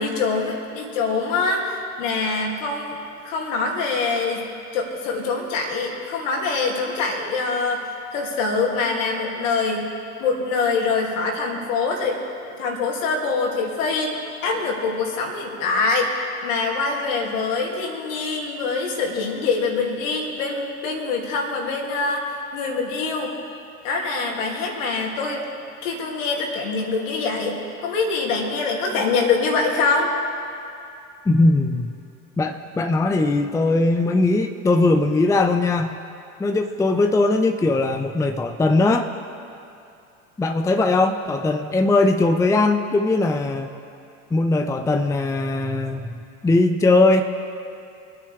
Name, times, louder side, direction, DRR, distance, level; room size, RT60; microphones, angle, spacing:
voice 1, 0.0-3.0 3.2-4.5 4.7-9.9 10.2-12.2 12.4-16.1 16.4-23.3 23.8-25.4 25.8-30.1, left 4 dB, 65° left, 0 dB, 2.9 m, -24 dB
voice 2, 31.3-31.9 32.4-35.9 36.4-39.1 40.4-43.7 44.3-47.2, left 2 dB, 10° left, 6 dB, 0.6 m, -20 dB
24.5 x 9.4 x 3.6 m, 2.6 s
hypercardioid pair, 80°, 40 cm